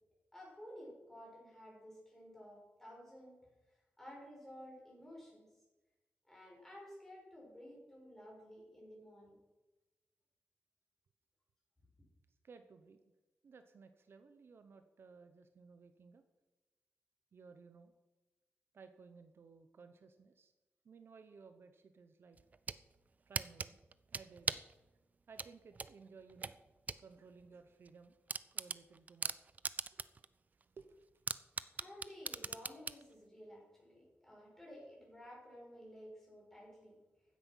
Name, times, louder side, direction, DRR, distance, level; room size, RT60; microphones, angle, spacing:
voice 1, 0.3-3.4 3.7-5.5 6.2-9.3 31.8-37.0, equal, 10° left, -3 dB, 6.7 m, -54 dB
voice 2, 12.4-13.0 13.4-16.2 17.3-17.9 18.7-20.5 20.8-22.4 23.3-23.8 24.1-24.6 25.3-26.6 27.0-28.1 28.5-29.5 29.9-30.1 30.8-30.9, right 5 dB, 60° right, 9 dB, 1.0 m, -58 dB
sound 1, 22.4-22.8 23.3-24.7 25.4-27.0 27.4-27.5 27.9-28.0 28.3-30.2 30.6-30.7 31.3-33.0, right 4 dB, 35° right, 0.5 m, -39 dB
15.5 x 9.7 x 6.4 m, 1.1 s
wide cardioid pair, 145°, 4 cm